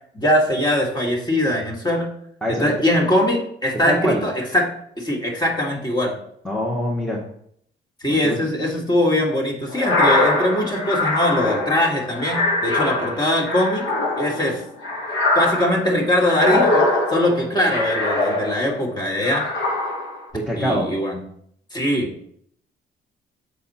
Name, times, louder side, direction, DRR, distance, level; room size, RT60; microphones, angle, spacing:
voice 1, 0.1-2.1 2.5-4.7 5.0-6.2 8.0-13.9 14.2-14.6 15.4-19.5 20.5-21.2 21.7-22.1, left 1 dB, 20° left, -1 dB, 1.8 m, -21 dB
voice 2, 2.4-2.7 3.9-4.2 6.4-7.2 8.2-8.4 20.3-20.9, equal, 5° left, -4 dB, 1.2 m, -23 dB
sound 1, 9.7-18.8 19.2-20.2, left 2 dB, 70° left, 1.9 m, -22 dB
6.8 x 4.2 x 4.2 m, 0.67 s
cardioid pair, 90°, 20 cm